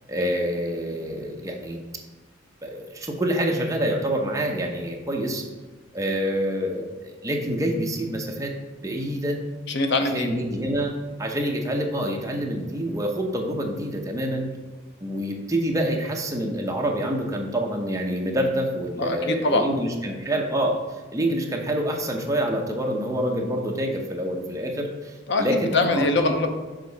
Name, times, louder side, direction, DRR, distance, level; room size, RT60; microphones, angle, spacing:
voice 1, 0.1-1.8 2.6-5.4 5.9-8.5 8.8-9.4 10.1-14.5 15.0-20.8 21.1-25.1 25.4-26.3, right 1 dB, 15° right, 1 dB, 0.8 m, -26 dB
voice 2, 9.7-10.3 19.0-19.6 25.3-26.5, left 2 dB, 60° left, 6 dB, 0.7 m, -23 dB
6.7 x 4.8 x 4.0 m, 1.3 s
head